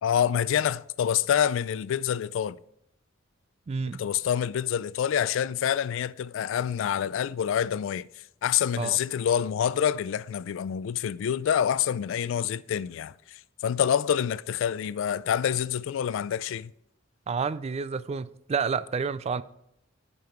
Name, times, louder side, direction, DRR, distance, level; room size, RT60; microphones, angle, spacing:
voice 1, 0.0-2.6 4.0-8.0 8.4-16.7, left 9 dB, 70° left, 0.3 m, -27 dB
voice 2, 3.7-4.0 8.8-9.0 17.3-19.4, right 5 dB, 30° right, 0.3 m, -29 dB
9.4 x 5.3 x 4.4 m
head